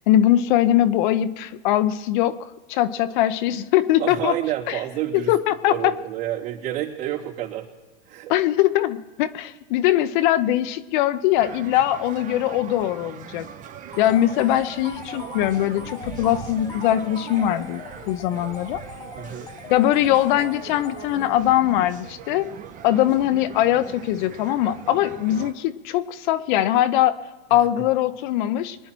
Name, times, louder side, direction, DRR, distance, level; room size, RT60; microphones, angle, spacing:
voice 1, 0.0-4.4 4.7-4.8 5.1-5.9 8.3-13.5 14.0-18.8 19.7-22.5 22.8-27.2 27.5-28.8, left 13 dB, 45° left, 12 dB, 0.8 m, -21 dB
voice 2, 4.0-5.3 5.7-7.7 8.1-8.3 19.1-19.5, right 13 dB, 65° right, -4 dB, 3.5 m, -29 dB
sound 1, 11.4-25.5, right 9 dB, 25° right, 0.9 m, -40 dB
sound 2, 13.9-21.7, left 6 dB, 10° left, 0.5 m, -42 dB
23.5 x 10.0 x 4.6 m, 1.3 s
hypercardioid pair, 125°, 33 cm